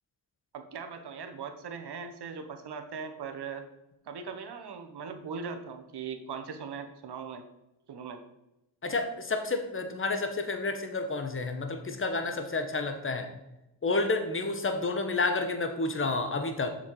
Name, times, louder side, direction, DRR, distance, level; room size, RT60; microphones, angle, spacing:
voice 1, 0.5-3.6 4.0-7.4 7.9-8.2, right 6 dB, 60° right, 6 dB, 1.1 m, -39 dB
voice 2, 8.8-13.3 13.8-16.7, left 3 dB, 30° left, 6 dB, 1.2 m, -30 dB
7.1 x 5.6 x 4.7 m, 0.91 s
cardioid pair, 75°, 44 cm